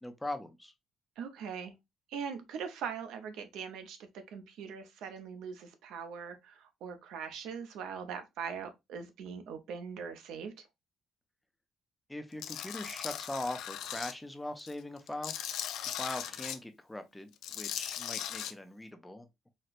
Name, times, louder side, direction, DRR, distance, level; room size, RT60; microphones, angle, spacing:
voice 1, 0.0-0.7 12.1-19.5, left 1 dB, 5° left, 0.4 m, -41 dB
voice 2, 1.2-1.7 2.1-10.5, right 6 dB, 80° right, 0.6 m, -41 dB
Tools, 12.4-14.1 14.6-16.6 17.3-18.5, left 10 dB, 75° left, 0.3 m, -38 dB
4.2 x 2.1 x 2.4 m
cardioid pair, 165°, 0 cm